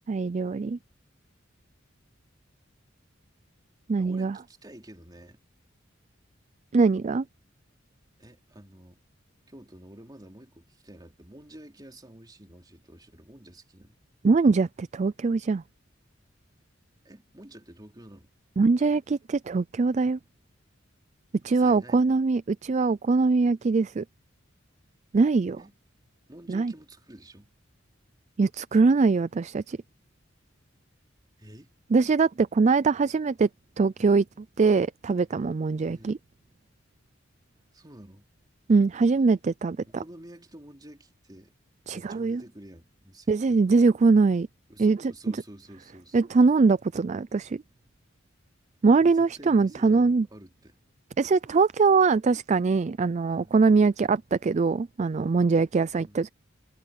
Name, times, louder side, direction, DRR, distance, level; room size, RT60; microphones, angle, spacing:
voice 1, 0.1-0.8 3.9-4.4 6.7-7.2 14.2-15.6 18.6-20.2 21.4-24.0 25.1-25.6 26.5-26.7 28.4-29.8 31.9-33.5 33.8-34.2 34.6-36.2 38.7-40.0 41.9-42.4 43.3-44.5 44.8-45.1 46.1-47.6 48.8-50.3 51.2-56.3, right 4 dB, 35° right, 0.4 m, -22 dB
voice 2, 4.0-5.4 8.2-9.0 9.5-14.0 17.0-18.3 21.5-22.1 25.6-25.7 26.3-27.5 31.4-31.7 35.9-36.2 37.7-38.3 39.9-41.5 41.9-43.6 44.7-46.2 49.0-50.8 53.4-53.6 54.0-54.2 56.0-56.2, right 1 dB, 20° right, 3.0 m, -49 dB
head